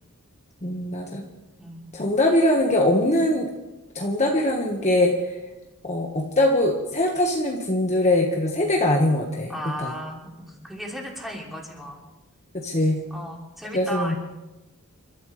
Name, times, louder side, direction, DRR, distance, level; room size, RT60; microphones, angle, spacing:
voice 1, 0.6-1.2 1.9-3.5 3.9-5.1 5.8-9.5 9.8-9.9 12.6-13.0 13.7-14.2, left 1 dB, 30° left, 0 dB, 1.4 m, -22 dB
voice 2, 9.5-12.0 13.1-14.2, equal, ahead, -2 dB, 3.0 m, -35 dB
30.0 x 13.5 x 3.3 m, 1.0 s
head